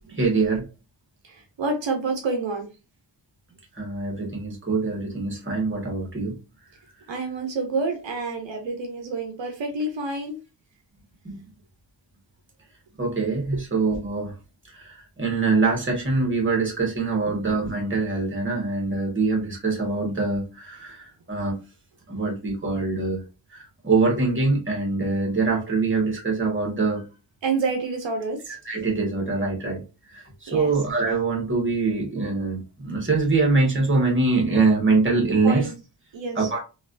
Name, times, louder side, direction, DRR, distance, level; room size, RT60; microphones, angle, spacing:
voice 1, 0.1-0.6 3.7-6.3 11.2-11.4 13.0-14.3 14.7-21.6 22.1-23.2 23.5-27.1 28.6-29.8 30.1-35.7 36.3-36.6, right 3 dB, 25° right, -1 dB, 1.5 m, -24 dB
voice 2, 1.2-2.7 7.1-10.4 27.4-28.6 30.5-30.7 35.4-35.7 36.1-36.5, right 3 dB, 80° right, 3 dB, 0.7 m, -28 dB
3.1 x 2.6 x 2.5 m, 0.30 s
cardioid pair, 55°, 45 cm